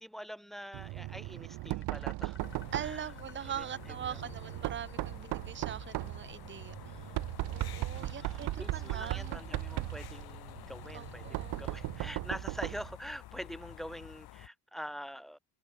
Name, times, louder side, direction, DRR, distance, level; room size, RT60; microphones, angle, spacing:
voice 1, 0.0-2.4 2.8-3.0 3.6-3.7 4.1-4.2 7.9-11.3 11.6-15.4, equal, ahead, 0.9 m, -44 dB
sound 1, 0.6-7.7, left 6 dB, 30° left, 4.0 m, -59 dB
Knock, 0.7-13.0, right 18 dB, 85° right, 0.6 m, -38 dB
sound 2, 2.4-14.5, left 15 dB, 70° left, 1.2 m, -50 dB
voice 2, 2.7-7.1 7.5-9.4 10.9-11.6, right 9 dB, 30° right, 0.6 m, -42 dB
cardioid pair, 170°, 39 cm